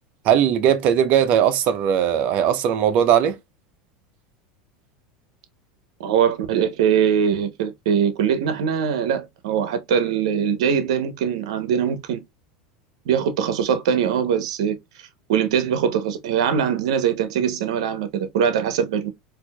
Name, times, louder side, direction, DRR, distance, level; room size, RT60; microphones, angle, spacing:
voice 1, 0.2-3.4, right 9 dB, 50° right, 0.8 m, -19 dB
voice 2, 6.0-12.2 13.1-14.7 15.3-19.1, right 8 dB, 80° right, 0.8 m, -22 dB
4.4 x 2.7 x 2.2 m
supercardioid pair, 125°, 3 cm